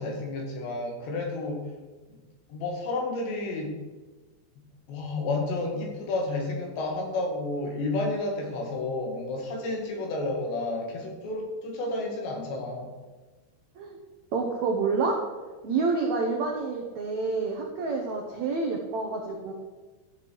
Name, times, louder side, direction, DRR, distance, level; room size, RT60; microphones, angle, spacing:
voice 1, 0.0-1.7 2.1-2.2 2.5-3.7 4.9-13.0, left 2 dB, 80° left, 1 dB, 4.2 m, -31 dB
voice 2, 14.3-15.2 15.6-19.5, right 4 dB, 80° right, 1 dB, 1.6 m, -28 dB
14.0 x 8.1 x 4.6 m, 1.3 s
omnidirectional pair, 5.0 m